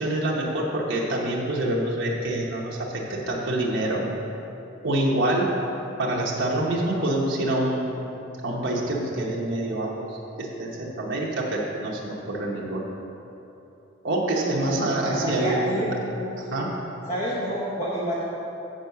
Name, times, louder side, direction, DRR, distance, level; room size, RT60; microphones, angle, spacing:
voice 1, 0.0-4.0 4.8-5.5 6.0-8.0 8.4-12.9 14.0-15.9 16.5-16.7, right 1 dB, 65° right, -4 dB, 1.0 m, -26 dB
voice 2, 14.2-16.3 17.1-18.2, equal, 35° left, -7 dB, 1.1 m, -29 dB
7.8 x 4.7 x 6.7 m, 3.0 s
head